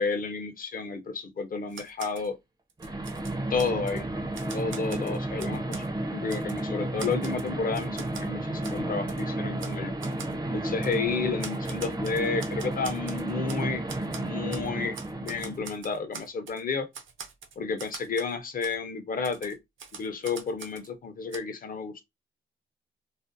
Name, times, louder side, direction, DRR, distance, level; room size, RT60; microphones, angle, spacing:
voice 1, 0.0-2.4 3.5-4.0 4.5-5.8 6.1-10.0 10.5-16.9 17.6-19.6 19.9-22.0, left 4 dB, 45° left, 0.5 m, -31 dB
Typewriter, 1.7-2.3 2.7-4.0 4.3-5.9 6.3-6.6 7.0-8.3 8.6-8.8 9.1-9.2 9.6-9.8 10.0-10.3 10.8-11.0 11.4-13.6 13.9-14.7 14.9-16.6 16.9-18.3 18.6-18.7 19.2-20.9 21.3-21.4, right 6 dB, 70° right, 0.5 m, -43 dB
sound 1, 2.2-2.3 2.8-15.8, right 1 dB, 20° right, 0.5 m, -32 dB
2.4 x 2.2 x 2.5 m
wide cardioid pair, 150°, 21 cm